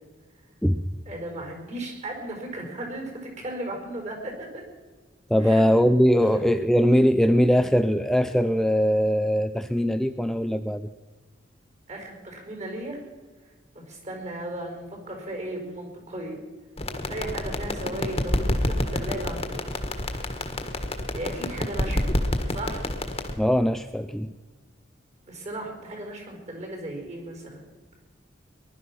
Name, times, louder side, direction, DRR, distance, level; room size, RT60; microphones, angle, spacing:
voice 1, 1.1-4.3 5.4-5.7 11.9-13.0 13.7-16.4 17.1-19.7 21.1-22.0 22.5-22.8 25.2-27.6, right 1 dB, 40° right, 2 dB, 4.7 m, -36 dB
voice 2, 5.3-10.9 23.4-24.3, equal, ahead, 9 dB, 0.4 m, -21 dB
sound 1, 16.8-23.3, left 1 dB, 30° left, 1.6 m, -28 dB
20.0 x 12.0 x 5.9 m, 1.4 s
head